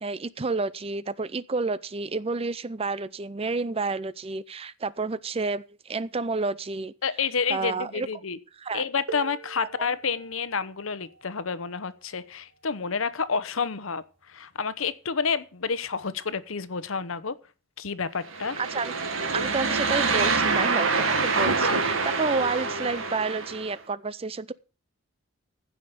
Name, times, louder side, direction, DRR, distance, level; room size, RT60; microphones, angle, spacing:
voice 1, 0.0-6.9 7.5-8.1 8.6-8.9 9.6-9.9 18.7-18.9 19.3-24.5, right 3 dB, 30° right, 0.5 m, -30 dB
voice 2, 7.0-8.4 8.7-17.4 17.8-18.6, left 5 dB, 80° left, 0.9 m, -29 dB
sound 1, 9.1-14.5 15.6-15.7 16.5-16.7, right 4 dB, 65° right, 1.8 m, -46 dB
sound 2, 18.3-23.7, right 4 dB, 80° right, 2.0 m, -26 dB
15.5 x 5.8 x 6.6 m
head